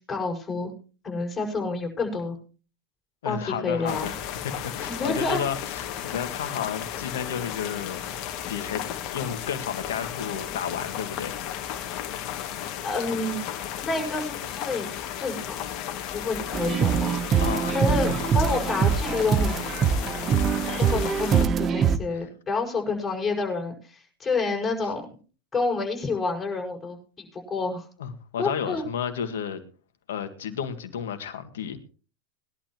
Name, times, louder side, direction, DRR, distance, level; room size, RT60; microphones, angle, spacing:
voice 1, 0.1-0.7 1.0-2.4 3.2-4.1 4.8-5.4 12.8-13.4 13.8-14.9 15.2-15.6 16.1-17.3 17.7-19.6 20.7-25.1 25.5-27.9 28.4-28.8, left 3 dB, 20° left, 5.8 m, -29 dB
voice 2, 3.2-8.2 8.5-8.8 9.1-11.4 17.4-18.2 22.1-22.3 24.8-24.9 28.0-29.6 30.1-31.8, left 8 dB, 75° left, 1.9 m, -32 dB
sound 1, 3.9-21.4, left 10 dB, 50° left, 2.0 m, -34 dB
sound 2, 16.5-22.0, right 7 dB, 35° right, 0.9 m, -23 dB
20.5 x 11.5 x 3.0 m
hypercardioid pair, 100°, 0 cm